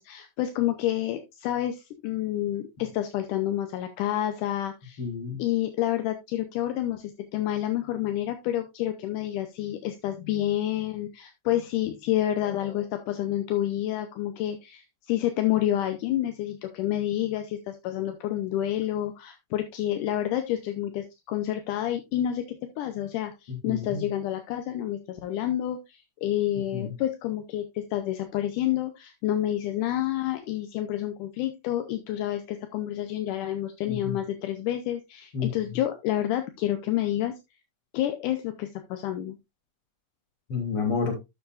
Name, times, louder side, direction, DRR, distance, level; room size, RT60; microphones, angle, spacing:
voice 1, 0.0-5.0 5.4-37.3 37.9-39.4, left 12 dB, 80° left, 7 dB, 2.3 m, -29 dB
voice 2, 5.0-5.4 23.7-24.1 26.7-26.9 33.9-34.1 35.3-35.5 40.5-41.1, left 5 dB, 45° left, 1 dB, 3.8 m, -29 dB
12.0 x 7.2 x 2.5 m, 0.22 s
omnidirectional pair, 3.7 m